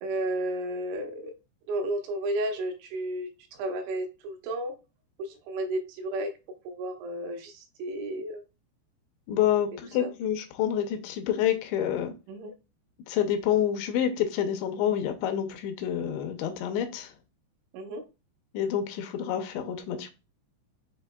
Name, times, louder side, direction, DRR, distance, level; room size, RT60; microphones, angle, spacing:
voice 1, 0.0-1.3 1.7-4.7 5.2-6.3 6.6-8.4 10.0-10.1 12.3-12.5 17.7-18.0, right 1 dB, 85° right, 3.2 m, -32 dB
voice 2, 9.3-12.1 13.1-17.1 18.5-20.1, left 10 dB, 85° left, 2.9 m, -28 dB
7.3 x 2.8 x 2.2 m
omnidirectional pair, 5.1 m